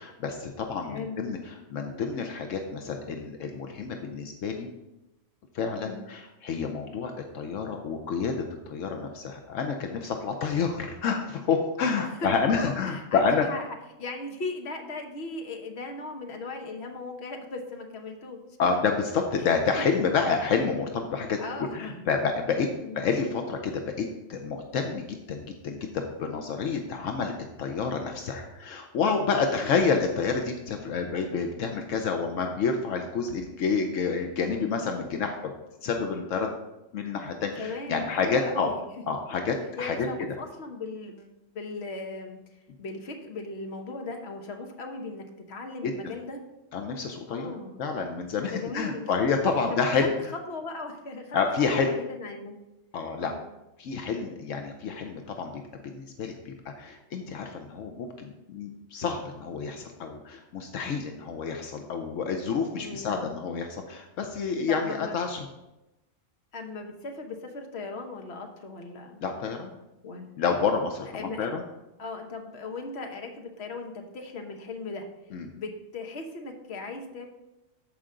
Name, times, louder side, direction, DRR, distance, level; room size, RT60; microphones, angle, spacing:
voice 1, 0.0-4.7 5.5-13.5 18.6-21.4 21.7-22.7 22.9-27.3 27.6-35.5 35.8-36.5 36.9-38.7 39.1-40.1 45.8-45.9 46.7-47.5 47.8-50.1 51.3-51.9 52.9-53.3 53.8-65.5 69.2-69.8 70.4-71.6 75.3-75.5, left 5 dB, 80° left, 4 dB, 1.1 m, -29 dB
voice 2, 0.9-1.2 5.8-6.0 12.2-13.7 14.0-18.4 21.4-22.0 22.8-23.0 29.5-29.9 37.6-38.8 39.7-42.4 42.8-46.4 47.3-47.7 48.4-49.1 49.7-49.8 50.3-51.4 51.7-52.6 53.2-53.4 62.7-63.3 64.7-65.2 66.5-69.2 70.0-70.3 71.1-71.5 72.0-75.1 75.5-77.3, left 3 dB, 60° left, 3 dB, 1.3 m, -38 dB
13.0 x 5.0 x 3.8 m, 0.96 s
omnidirectional pair, 1.3 m